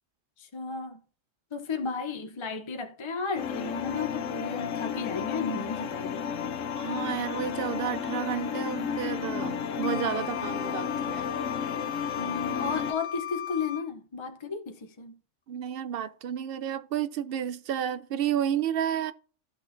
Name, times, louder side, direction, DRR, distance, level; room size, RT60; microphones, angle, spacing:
voice 1, 0.4-1.0 1.5-6.3 12.2-15.2, left 4 dB, 35° left, 0.5 m, -34 dB
sound 1, 3.3-12.9, left 7 dB, 85° left, 1.1 m, -33 dB
voice 2, 6.7-11.3 15.5-19.1, right 9 dB, 60° right, 0.7 m, -31 dB
Wind instrument woodwind instrument, 9.8-13.9, left 10 dB, 65° left, 0.8 m, -37 dB
15.0 x 6.2 x 2.6 m
omnidirectional pair, 1.3 m